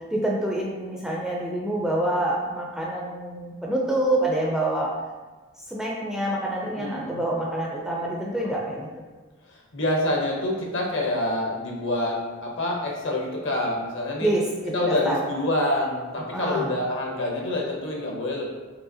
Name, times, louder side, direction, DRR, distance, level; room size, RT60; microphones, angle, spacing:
voice 1, 0.1-4.9 5.7-8.9 14.2-15.2 16.3-16.7, right 1 dB, 5° right, -3 dB, 0.4 m, -26 dB
voice 2, 6.7-7.1 8.4-8.5 9.5-14.3 14.7-18.5, left 1 dB, 60° left, -1 dB, 0.8 m, -27 dB
4.7 x 3.3 x 2.7 m, 1.3 s
head